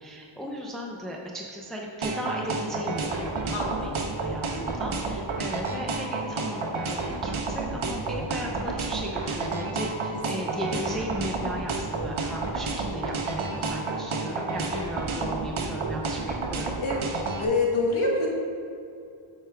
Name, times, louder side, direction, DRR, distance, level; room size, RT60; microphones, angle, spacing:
voice 1, 0.0-16.7, equal, ahead, -1 dB, 0.6 m, -36 dB
sound 1, 2.0-17.4, right 3 dB, 75° right, 0.8 m, -30 dB
voice 2, 3.5-3.9 10.3-10.5 16.8-17.0 17.4-18.3, left 2 dB, 75° left, -2 dB, 1.4 m, -26 dB
8.0 x 5.0 x 3.4 m, 2.5 s
wide cardioid pair, 65°, 50 cm